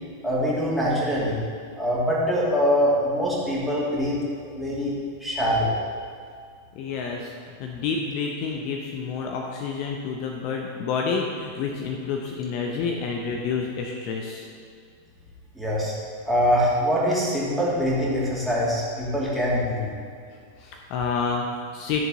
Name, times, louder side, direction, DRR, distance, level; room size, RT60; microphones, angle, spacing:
voice 1, 0.2-1.4 1.8-4.9 5.2-5.7 15.5-15.9 16.2-19.9, equal, ahead, -8 dB, 2.7 m, -23 dB
voice 2, 6.7-7.3 7.6-14.5 20.6-22.0, left 5 dB, 45° left, 1 dB, 0.8 m, -29 dB
11.5 x 6.8 x 3.9 m, 2.2 s
figure-of-eight pair, 90°, 0 cm